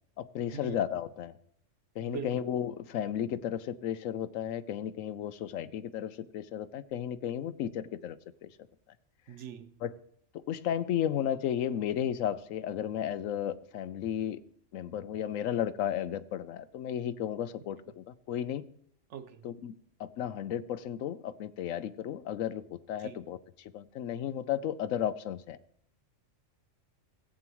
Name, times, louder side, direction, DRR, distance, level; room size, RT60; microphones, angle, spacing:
voice 1, 0.2-1.3 2.0-8.5 9.8-9.9 10.3-14.4 14.7-18.6 19.4-19.7 20.0-25.6, left 10 dB, 80° left, 15 dB, 1.0 m, -34 dB
voice 2, 2.0-2.3 9.3-9.7 19.1-19.4 23.0-23.2, right 7 dB, 65° right, 11 dB, 1.0 m, -41 dB
17.0 x 8.7 x 3.0 m, 0.68 s
omnidirectional pair, 1.4 m